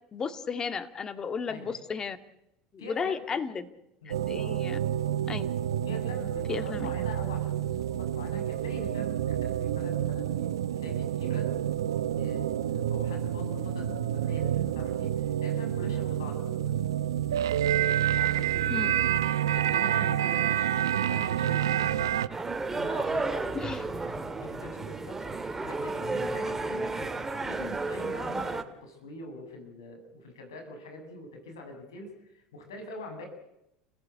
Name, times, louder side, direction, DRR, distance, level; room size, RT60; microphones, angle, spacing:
voice 1, 0.1-2.2 2.9-3.7 4.1-4.8 5.3-5.4 6.5-6.9 18.7-18.9 23.5-23.8, left 5 dB, 30° left, 10 dB, 2.4 m, -34 dB
voice 2, 1.5-1.8 2.8-3.4 4.0-4.2 5.9-10.5 10.8-11.5 11.8-16.7 18.1-19.0 19.5-27.1 27.4-33.3, left 1 dB, 85° left, 4 dB, 7.4 m, -44 dB
sound 1, 4.1-22.3, right 10 dB, 90° right, 1.0 m, -28 dB
sound 2, 22.3-28.6, right 3 dB, 15° right, 2.5 m, -32 dB
30.0 x 16.5 x 8.3 m, 0.85 s
hypercardioid pair, 90°, 2 cm